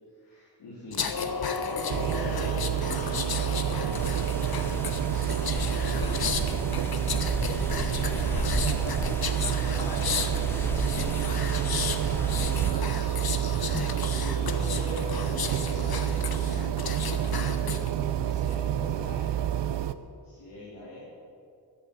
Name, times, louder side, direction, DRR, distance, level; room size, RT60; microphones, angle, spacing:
voice 1, 0.1-1.1 1.5-5.1 5.7-7.5 8.3-10.5 10.8-13.4 14.2-19.3 20.2-21.0, left 1 dB, 85° left, -8 dB, 3.5 m, -42 dB
sound 1, 0.9-17.9 18.3-18.5, left 6 dB, 60° left, 1.1 m, -34 dB
sound 2, 1.9-19.9, right 10 dB, 85° right, 0.7 m, -28 dB
sound 3, 3.9-12.7, left 1 dB, 5° left, 0.6 m, -36 dB
14.5 x 10.5 x 6.8 m, 2.3 s
cardioid pair, 75°, 42 cm